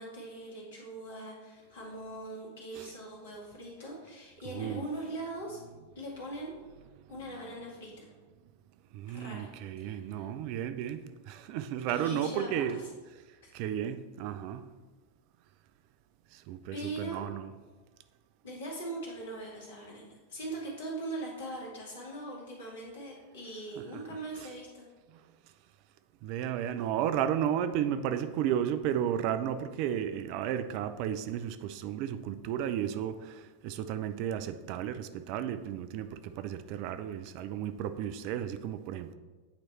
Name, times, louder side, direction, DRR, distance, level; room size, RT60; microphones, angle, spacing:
voice 1, 0.0-5.6 6.0-6.5 7.1-8.1 9.1-9.5 9.8-10.3 11.9-12.9 16.7-17.2 18.4-24.9, right 2 dB, 60° left, 1.9 m, -41 dB
voice 2, 4.5-4.9 8.9-11.0 11.3-12.8 13.5-14.6 16.5-17.5 23.8-24.0 24.4-24.5 26.2-33.3 33.6-39.1, right 10 dB, 45° right, 0.3 m, -33 dB
8.6 x 3.1 x 4.3 m
figure-of-eight pair, 90°, 0 cm